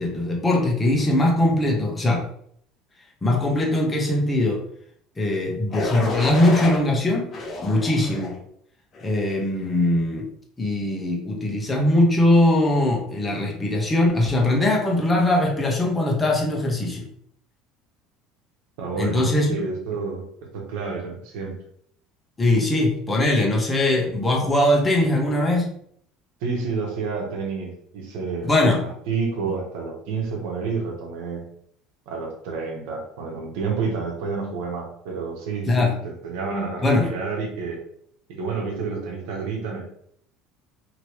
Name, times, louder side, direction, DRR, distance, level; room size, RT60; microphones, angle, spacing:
voice 1, 0.0-2.3 3.2-4.6 5.2-7.3 7.6-8.3 9.0-10.2 10.6-17.0 19.0-19.6 22.4-25.7 28.4-28.8 35.7-35.9 36.8-37.1, left 1 dB, 20° left, 0 dB, 1.0 m, -21 dB
sound 1, 5.7-6.8 7.3-8.4 8.9-9.3, left 2 dB, 35° left, 0.9 m, -30 dB
voice 2, 18.8-20.2 20.5-21.5 26.4-28.5 29.1-31.4 32.1-37.8 38.3-39.9, right 4 dB, 75° right, 0 dB, 1.1 m, -29 dB
3.0 x 2.9 x 3.1 m, 0.66 s
supercardioid pair, 95°, 0 cm